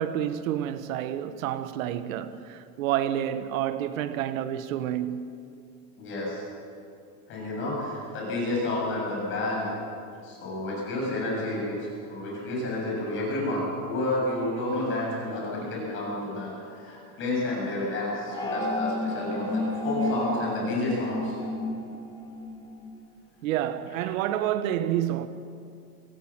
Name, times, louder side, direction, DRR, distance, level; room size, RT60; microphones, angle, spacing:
voice 1, 0.0-5.3 23.4-25.3, right 11 dB, 65° right, 1.2 m, -29 dB
voice 2, 6.0-6.4 7.3-9.7 10.2-21.4 24.0-24.1, left 1 dB, 30° left, 7.5 m, -30 dB
sound 1, 18.3-22.9, left 2 dB, 10° left, 1.9 m, -31 dB
25.0 x 16.5 x 7.4 m
supercardioid pair, 170°, 43 cm